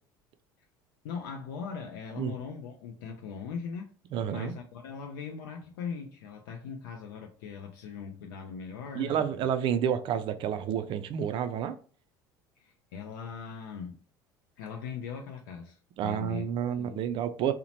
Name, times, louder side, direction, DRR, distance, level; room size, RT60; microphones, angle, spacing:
voice 1, 1.0-3.9 4.3-9.5 12.6-14.0 14.6-17.0, left 6 dB, 75° left, 0.4 m, -40 dB
voice 2, 4.1-4.5 8.9-11.8 16.0-17.5, right 9 dB, 50° right, 0.3 m, -29 dB
2.8 x 2.1 x 2.8 m
hypercardioid pair, 70°, 11 cm